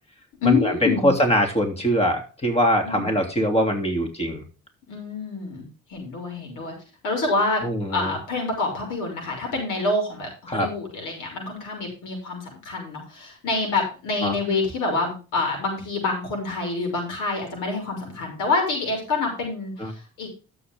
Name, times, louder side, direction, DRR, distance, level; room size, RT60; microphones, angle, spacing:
voice 1, 0.4-1.1 2.8-3.2 4.9-6.7 7.0-7.6 7.9-20.3, left 3 dB, 90° left, 2 dB, 6.2 m, -27 dB
voice 2, 1.0-4.4 7.6-8.1 10.5-10.7 14.2-14.3 19.8-19.9, equal, 20° left, 4 dB, 3.2 m, -22 dB
12.0 x 7.9 x 3.7 m, 0.34 s
cardioid pair, 90°, 30 cm